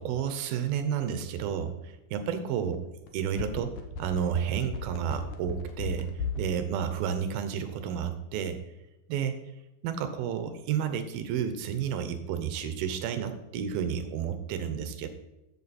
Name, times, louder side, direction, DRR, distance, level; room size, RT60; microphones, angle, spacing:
voice 1, 0.0-2.8 3.1-6.1 6.4-8.6 9.1-9.4 9.8-15.1, right 8 dB, 75° right, 9 dB, 2.4 m, -31 dB
sound 1, 3.1-6.5 6.8-6.9, left 5 dB, 75° left, 1.8 m, -35 dB
13.5 x 8.4 x 4.3 m, 0.97 s
omnidirectional pair, 5.0 m